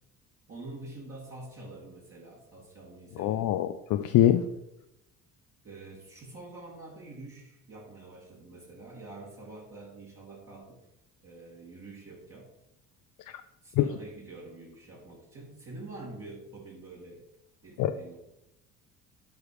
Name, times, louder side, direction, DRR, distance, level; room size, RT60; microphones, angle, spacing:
voice 1, 0.5-3.5 5.6-10.9 11.2-12.5 13.6-17.2 17.6-18.2, right 2 dB, 35° right, -6 dB, 2.9 m, -46 dB
voice 2, 3.2-4.5 13.3-13.4 13.7-13.9 17.8-17.9, left 12 dB, 45° left, 8 dB, 0.6 m, -24 dB
12.0 x 4.8 x 5.0 m, 0.89 s
figure-of-eight pair, 55°, 42 cm